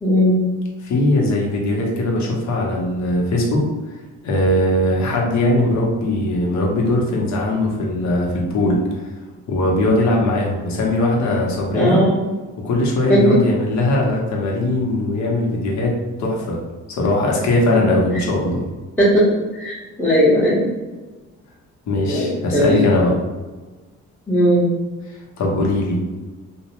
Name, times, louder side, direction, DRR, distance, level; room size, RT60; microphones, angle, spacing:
voice 1, 0.0-0.4 11.7-12.3 13.1-13.4 19.0-19.3 19.5-20.7 22.1-22.9 24.3-24.7, equal, 5° left, -10 dB, 0.8 m, -17 dB
voice 2, 0.8-3.7 4.2-9.1 9.5-12.0 12.6-16.6 16.9-18.6 21.9-23.2 25.1-26.0, left 1 dB, 65° left, -1 dB, 0.8 m, -20 dB
2.6 x 2.0 x 3.0 m, 1.2 s
cardioid pair, 90°, 30 cm